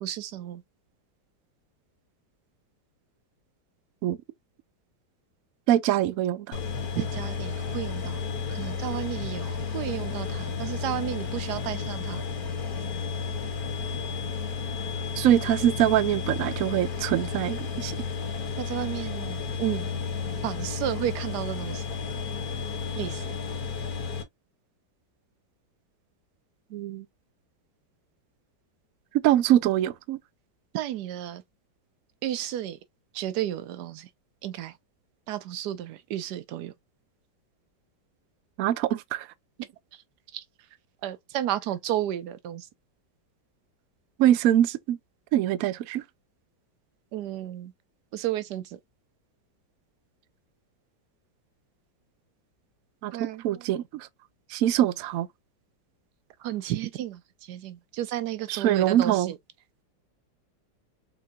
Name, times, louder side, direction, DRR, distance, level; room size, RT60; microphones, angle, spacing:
voice 1, 0.0-0.6 6.9-8.2 8.5-12.2 18.6-19.9 20.4-21.8 23.0-23.2 30.7-31.4 32.2-32.8 33.1-34.1 34.4-34.7 35.3-36.7 40.3-40.4 41.0-42.7 47.1-47.7 48.1-48.8 53.1-53.7 56.4-59.4, right 12 dB, 70° right, 1.1 m, -32 dB
voice 2, 5.7-6.6 15.2-17.9 26.7-27.0 29.2-30.2 38.6-39.3 44.2-45.0 45.3-46.0 53.0-54.1 54.5-55.3 58.5-59.3, right 12 dB, 85° right, 0.7 m, -23 dB
sound 1, 6.5-24.2, left 5 dB, 55° left, 1.5 m, -32 dB
4.7 x 3.8 x 2.3 m
omnidirectional pair, 2.0 m